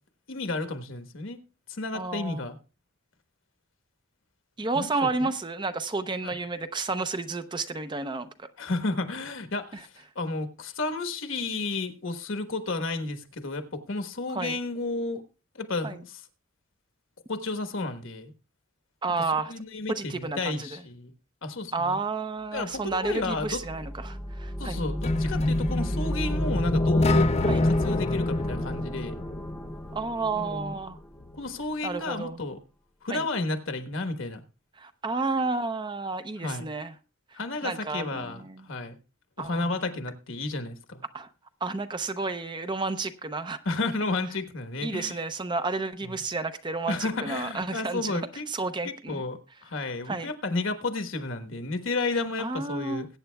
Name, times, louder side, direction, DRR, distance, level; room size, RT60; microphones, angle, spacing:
voice 1, 0.3-1.4 1.7-2.6 4.7-5.3 6.2-6.3 8.6-15.2 15.5-16.2 17.3-18.3 19.5-21.1 21.4-22.0 22.5-23.6 24.6-27.3 27.6-29.1 30.3-30.8 31.4-32.6 33.0-34.4 36.4-36.7 37.3-39.0 39.4-41.0 43.6-45.2 46.0-46.2 46.9-48.4 48.8-53.1, left 3 dB, 65° left, 1.4 m, -32 dB
voice 2, 1.9-2.4 4.6-8.5 9.7-9.8 14.3-14.6 15.8-16.0 19.0-19.5 19.9-20.8 21.7-24.8 27.4-27.6 29.9-31.0 31.8-32.4 33.1-33.3 34.8-36.9 37.3-38.7 39.4-39.7 41.1-41.3 41.6-43.6 44.8-48.2 48.5-49.2 50.1-50.3 52.4-53.0, right 3 dB, 20° right, 0.6 m, -31 dB
sound 1, 22.7-31.6, equal, 5° left, 0.9 m, -34 dB
sound 2, 25.0-30.0, left 2 dB, 30° left, 0.5 m, -26 dB
21.0 x 8.9 x 2.3 m
head